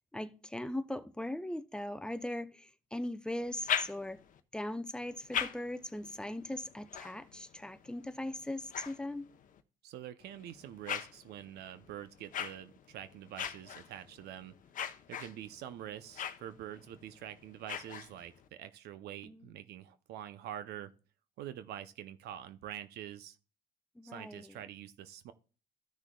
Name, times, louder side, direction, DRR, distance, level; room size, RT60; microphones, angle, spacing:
voice 1, 0.1-4.2 4.5-9.3 19.2-19.5 24.0-24.6, left 1 dB, 5° left, 0.5 m, -39 dB
sound 1, 3.4-4.4 5.0-9.6 10.2-18.5, left 9 dB, 50° left, 0.8 m, -42 dB
voice 2, 9.8-14.5 15.1-20.9 21.4-23.4 24.0-25.3, right 11 dB, 75° right, 0.6 m, -46 dB
14.0 x 6.2 x 2.3 m
cardioid pair, 110°, 17 cm